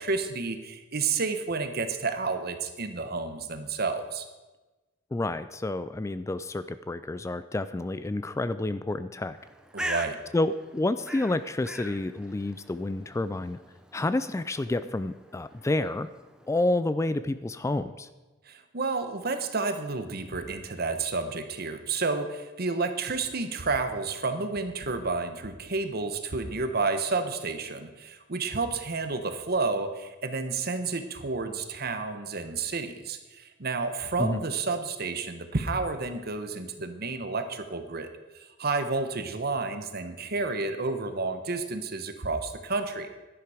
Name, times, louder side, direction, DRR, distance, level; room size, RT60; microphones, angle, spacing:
voice 1, 0.0-4.3 9.7-10.2 18.5-43.1, right 3 dB, 55° right, 8 dB, 1.1 m, -30 dB
voice 2, 5.1-9.4 9.8-9.9 10.3-13.6 13.9-16.1 16.5-18.1 34.2-34.4, left 2 dB, 15° left, 13 dB, 0.3 m, -29 dB
Bird, 9.3-16.9, right 1 dB, 5° right, 0.8 m, -42 dB
11.5 x 10.5 x 5.0 m, 1.2 s
head